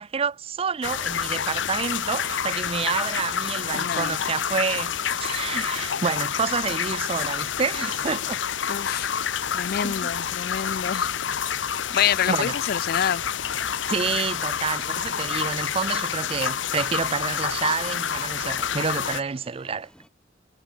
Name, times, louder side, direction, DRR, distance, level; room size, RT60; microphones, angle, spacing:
voice 1, 0.0-8.4 9.8-10.1 12.3-12.5 13.9-19.9, right 5 dB, 30° right, 0.5 m, -28 dB
sound 1, 0.8-19.2, left 8 dB, 90° left, 0.9 m, -28 dB
sound 2, 1.1-20.1, equal, 5° left, 3.2 m, -56 dB
voice 2, 3.7-4.2 8.7-9.1 9.5-11.1 11.9-13.2, left 9 dB, 55° left, 0.4 m, -27 dB
head